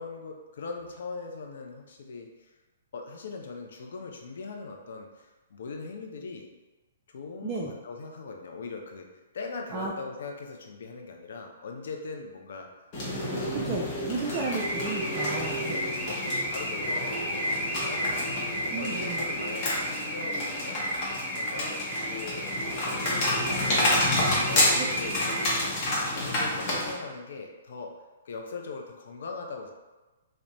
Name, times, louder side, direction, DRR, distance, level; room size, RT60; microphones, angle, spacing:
voice 1, 0.0-2.5 2.9-6.5 7.1-9.1 9.3-12.7 13.2-13.6 15.2-20.9 21.3-22.5 22.9-25.6 26.0-27.9 28.2-29.7, left 4 dB, 60° left, 2 dB, 0.4 m, -40 dB
sound 1, 12.9-26.9, left 1 dB, 35° left, 0.8 m, -30 dB
voice 2, 13.5-15.8 18.7-19.2 24.8-24.9, right 4 dB, 25° right, -4 dB, 0.3 m, -33 dB
Car / Alarm, 14.3-25.5, equal, 5° right, 0.8 m, -33 dB
2.6 x 2.0 x 3.0 m, 1.2 s
figure-of-eight pair, 120°, 0 cm